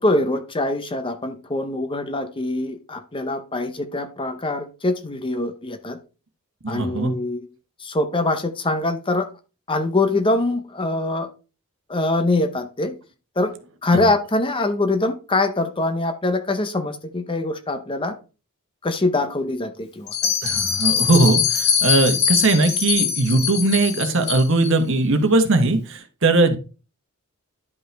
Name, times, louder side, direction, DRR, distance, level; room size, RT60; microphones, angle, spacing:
voice 1, 0.0-6.0 6.7-7.5 7.8-9.3 9.7-11.3 11.9-13.0 13.4-13.5 13.8-18.2 18.8-20.3, left 2 dB, 25° left, 8 dB, 0.8 m, -23 dB
voice 2, 6.6-7.1 20.4-26.6, right 2 dB, 60° right, 7 dB, 1.3 m, -19 dB
Bell, 20.1-24.7, left 7 dB, 50° left, 1.9 m, -22 dB
10.5 x 5.4 x 3.4 m, 0.33 s
head